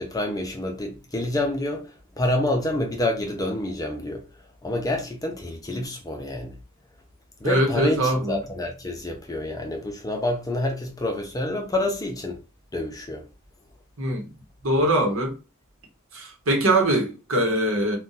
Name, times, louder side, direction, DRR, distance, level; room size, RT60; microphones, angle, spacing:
voice 1, 0.0-4.2 4.6-6.5 7.4-12.4 12.7-13.2, left 1 dB, 15° left, 0.6 m, -28 dB
voice 2, 7.4-8.4 14.0-14.2 14.6-15.3 16.1-18.0, right 1 dB, 65° right, 0.9 m, -22 dB
2.5 x 2.3 x 4.0 m
head